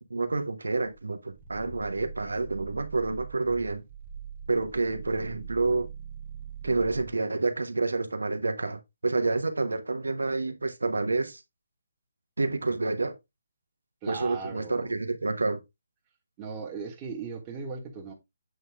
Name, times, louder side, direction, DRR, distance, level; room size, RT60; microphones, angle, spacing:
voice 1, 0.1-3.8 4.5-5.9 6.6-11.4 12.4-13.1 14.1-15.6, right 3 dB, 85° right, 1.2 m, -28 dB
Growling, 0.9-7.2, right 7 dB, 40° right, 0.8 m, -43 dB
voice 2, 14.0-14.9 16.4-18.1, right 5 dB, 25° right, 1.6 m, -38 dB
7.9 x 3.9 x 3.6 m
figure-of-eight pair, 150°, 0 cm